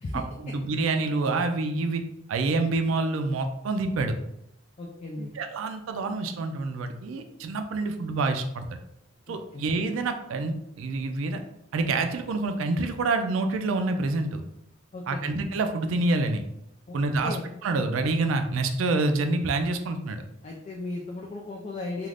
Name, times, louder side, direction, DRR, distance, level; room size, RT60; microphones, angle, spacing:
voice 1, 0.1-2.0 2.3-4.1 5.2-8.8 9.3-11.4 11.7-14.4 15.1-16.4 16.9-17.4 17.6-20.2, right 3 dB, 85° right, 7 dB, 0.4 m, -27 dB
voice 2, 4.8-5.3 9.5-9.7 14.9-15.3 16.9-17.0 17.2-17.4 20.4-22.1, left 2 dB, 35° left, -1 dB, 0.3 m, -35 dB
2.4 x 2.4 x 3.3 m, 0.79 s
head